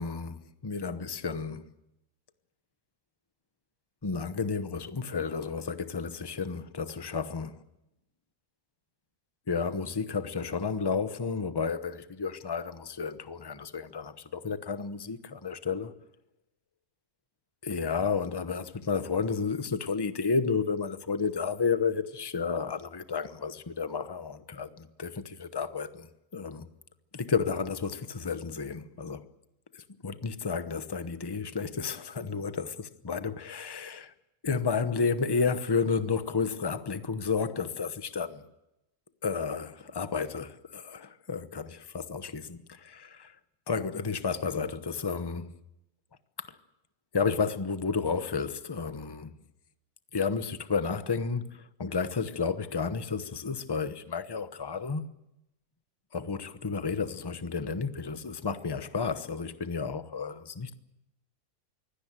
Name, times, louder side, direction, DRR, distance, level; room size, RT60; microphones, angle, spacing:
voice 1, 0.0-1.6 4.0-7.6 9.5-15.9 17.6-26.7 27.1-29.3 29.7-34.1 34.4-38.4 39.2-43.3 43.7-45.5 46.4-46.6 47.1-49.4 50.1-55.1 56.1-60.7, left 5 dB, 20° left, 0.7 m, -32 dB
23.5 x 17.5 x 8.9 m
omnidirectional pair, 1.7 m